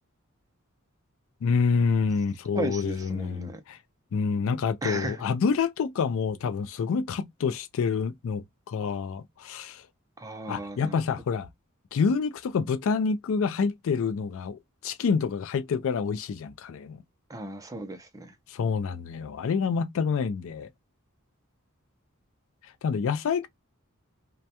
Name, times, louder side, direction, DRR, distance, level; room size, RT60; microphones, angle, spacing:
voice 1, 1.4-3.8 4.1-9.8 10.5-11.5 11.9-17.0 18.5-20.7 22.8-23.5, left 5 dB, 65° left, 0.4 m, -27 dB
voice 2, 2.5-3.6 4.8-5.2 10.2-11.0 17.3-18.3, right 2 dB, 15° right, 0.5 m, -35 dB
2.2 x 2.2 x 2.7 m
head